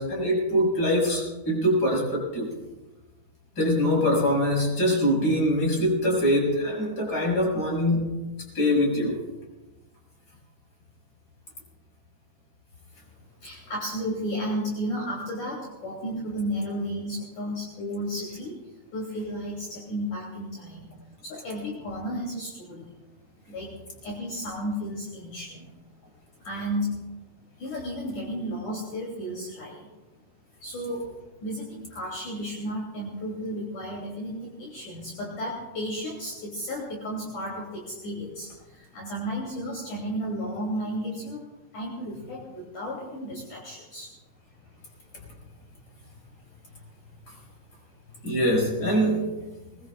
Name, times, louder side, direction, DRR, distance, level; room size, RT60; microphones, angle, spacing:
voice 1, 0.0-2.5 3.6-8.2 8.5-9.2 48.2-49.4, equal, 25° left, -2 dB, 6.2 m, -23 dB
voice 2, 13.4-20.9 21.2-23.0 23.5-23.7 24.0-25.7 26.4-26.9 27.6-29.9 30.6-31.0 31.4-41.4 41.7-44.1, equal, 55° left, -4 dB, 4.1 m, -33 dB
23.0 x 21.0 x 2.4 m, 1.1 s
omnidirectional pair, 4.6 m